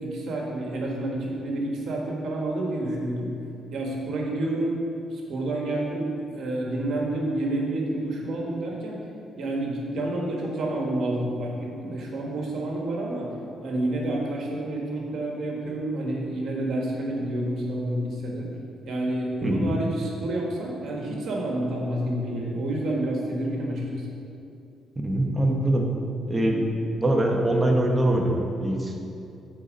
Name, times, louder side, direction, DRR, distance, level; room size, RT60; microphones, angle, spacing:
voice 1, 0.0-3.4 3.7-4.8 5.1-9.0 9.4-13.3 13.6-18.5 18.8-24.1, right 1 dB, 65° right, -1 dB, 1.5 m, -29 dB
voice 2, 25.0-25.9 26.3-29.0, right 1 dB, 20° right, 1 dB, 1.1 m, -23 dB
8.3 x 4.2 x 5.2 m, 2.6 s
cardioid pair, 90°, 0 cm